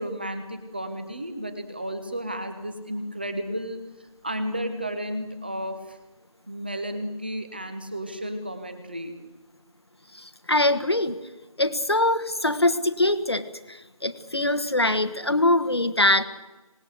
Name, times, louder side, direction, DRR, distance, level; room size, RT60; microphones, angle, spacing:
voice 1, 0.0-3.8 4.2-6.0 6.5-9.1, equal, 15° right, 9 dB, 1.4 m, -32 dB
voice 2, 10.2-11.2 11.6-16.3, left 1 dB, 45° left, 8 dB, 1.4 m, -23 dB
25.5 x 19.5 x 8.2 m, 1.1 s
figure-of-eight pair, 170°, 18 cm